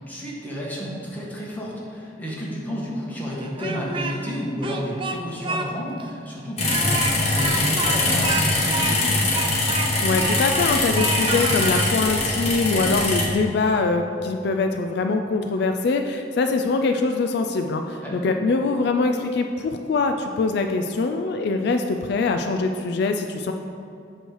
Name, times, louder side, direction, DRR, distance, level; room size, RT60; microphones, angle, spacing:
voice 1, 0.0-9.3 18.0-18.2, equal, 10° left, -5 dB, 1.4 m, -30 dB
Speech, 3.4-4.3 4.6-5.7 6.0-6.1 6.6-10.7 10.9-11.9, right 4 dB, 30° right, 0.4 m, -29 dB
sound 1, 6.6-13.2, left 2 dB, 35° left, 1.2 m, -22 dB
voice 2, 10.0-23.5, left 3 dB, 60° left, 5 dB, 0.3 m, -23 dB
7.8 x 3.2 x 6.4 m, 2.6 s
head